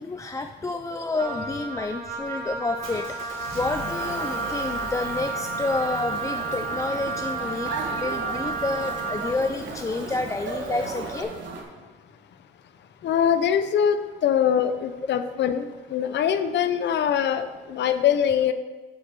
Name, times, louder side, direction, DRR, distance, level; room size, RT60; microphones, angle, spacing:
voice 1, 0.0-11.3, left 3 dB, 15° left, 6 dB, 0.3 m, -29 dB
Wind instrument woodwind instrument, 1.2-9.4, right 4 dB, 45° right, 1.3 m, -32 dB
Motor vehicle (road) / Engine, 2.8-11.2, right 2 dB, 85° right, 1.9 m, -38 dB
sound 1, 6.1-11.6, right 4 dB, 70° right, 1.5 m, -36 dB
voice 2, 13.0-18.5, left 8 dB, 60° left, 10 dB, 0.6 m, -23 dB
7.1 x 5.1 x 6.1 m, 1.3 s
cardioid pair, 90°, 20 cm